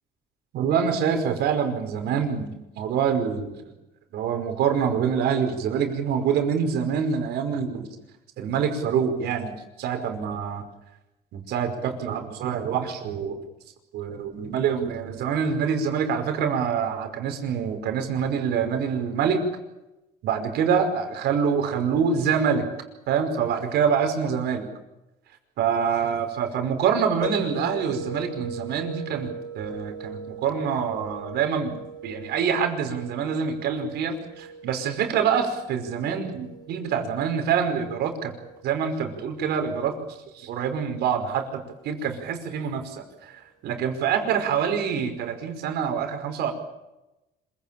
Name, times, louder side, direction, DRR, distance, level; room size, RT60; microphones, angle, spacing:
voice 1, 0.5-3.6 4.1-7.9 8.4-10.6 11.3-13.4 13.9-19.4 20.2-22.7 23.1-24.7 25.6-31.8 32.0-38.3 38.6-39.9 40.3-41.6 41.8-46.5, right 7 dB, 75° right, 5 dB, 5.2 m, -26 dB
sound 1, 27.2-42.2, right 3 dB, 25° left, 4.2 m, -41 dB
26.5 x 17.5 x 8.9 m, 0.96 s
cardioid pair, 110°, 17 cm